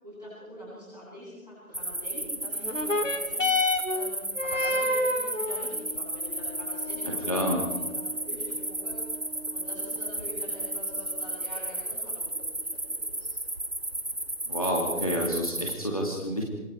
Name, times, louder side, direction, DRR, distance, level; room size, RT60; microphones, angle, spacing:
voice 1, 0.0-3.5 3.9-8.9 9.5-13.3, equal, ahead, -20 dB, 3.3 m, -45 dB
sound 1, 1.7-15.7, right 1 dB, 45° right, 1.6 m, -34 dB
sound 2, 2.6-11.6 12.4-12.5, left 2 dB, 60° left, 2.6 m, -32 dB
voice 2, 7.3-7.6 14.5-16.4, equal, 25° left, -2 dB, 2.5 m, -28 dB
27.5 x 23.5 x 4.7 m, 1.1 s
figure-of-eight pair, 175°, 43 cm